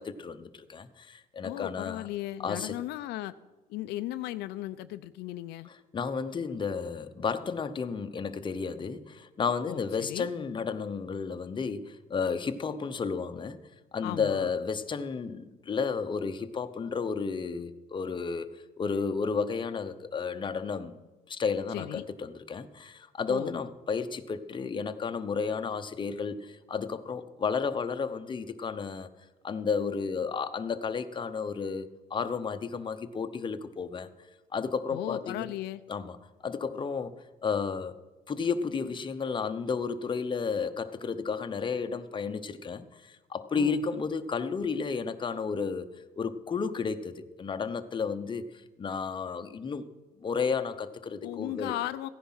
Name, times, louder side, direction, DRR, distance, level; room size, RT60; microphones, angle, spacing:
voice 1, 0.0-2.0 2.4-2.8 5.9-13.6 13.9-21.0 21.3-29.1 29.4-34.1 34.5-35.5 35.9-36.2 36.4-37.1 37.4-38.0 38.3-45.9 46.2-48.4 48.8-49.9 50.2-51.7, left 5 dB, 30° left, 0.9 m, -32 dB
voice 2, 1.4-3.3 3.7-5.7 9.7-10.3 14.0-14.5 21.7-22.0 23.3-23.5 34.9-35.8 43.5-43.8 51.2-52.1, left 15 dB, 85° left, 0.6 m, -36 dB
15.5 x 10.5 x 5.7 m
cardioid pair, 110°, 17 cm